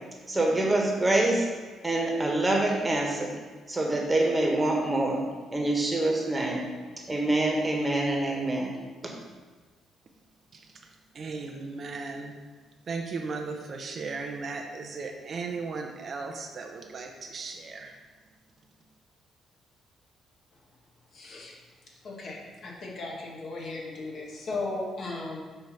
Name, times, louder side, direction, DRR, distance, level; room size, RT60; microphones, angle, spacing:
voice 1, 0.3-1.5 1.8-3.3 3.7-5.2 5.5-6.6 7.1-8.7 9.0-9.1, right 2 dB, 20° right, -1 dB, 1.5 m, -25 dB
voice 2, 11.1-12.3 12.9-17.9, right 4 dB, 50° right, 3 dB, 0.8 m, -36 dB
voice 3, 21.1-21.6 22.0-25.4, left 2 dB, 55° left, -3 dB, 1.8 m, -36 dB
7.6 x 3.0 x 5.8 m, 1.3 s
cardioid pair, 90°, 0 cm